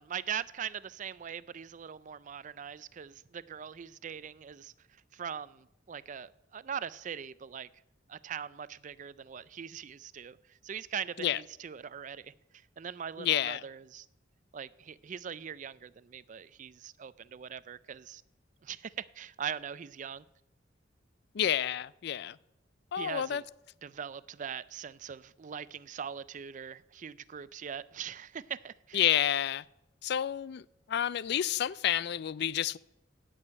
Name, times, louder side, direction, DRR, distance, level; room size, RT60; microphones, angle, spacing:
voice 1, 0.0-4.7 5.1-7.7 8.1-10.4 10.6-12.3 12.8-14.1 14.5-18.2 18.6-20.2 23.0-23.4 23.8-29.0, right 8 dB, 40° right, 0.4 m, -41 dB
voice 2, 13.2-13.6 21.3-22.4 22.9-23.4 28.9-29.6 30.0-30.6 30.9-32.8, left 10 dB, 60° left, 0.4 m, -29 dB
15.5 x 6.4 x 8.7 m
head